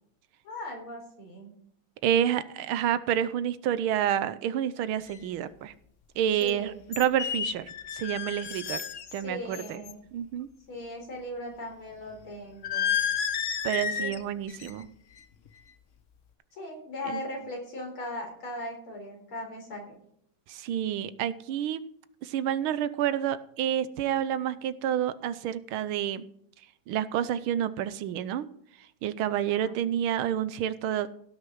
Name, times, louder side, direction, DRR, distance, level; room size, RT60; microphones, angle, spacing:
voice 1, 0.4-1.5 6.4-6.8 9.0-10.0 10.7-13.0 14.0-14.1 16.6-20.0 29.5-29.8, left 1 dB, 90° left, 0 dB, 5.0 m, -39 dB
voice 2, 2.0-5.7 6.2-8.8 9.1-9.8 10.1-10.5 13.6-14.9 17.1-17.2 20.5-21.8 22.2-26.2 26.9-28.5 29.0-31.1, right 10 dB, 90° right, 14 dB, 1.6 m, -29 dB
sound 1, 5.1-5.2 6.4-6.5 6.9-9.2 9.5-9.9 12.6-14.2 14.5-14.8 15.2-15.5, left 8 dB, 55° left, 0.9 m, -31 dB
16.5 x 6.5 x 6.2 m, 0.68 s
omnidirectional pair, 2.3 m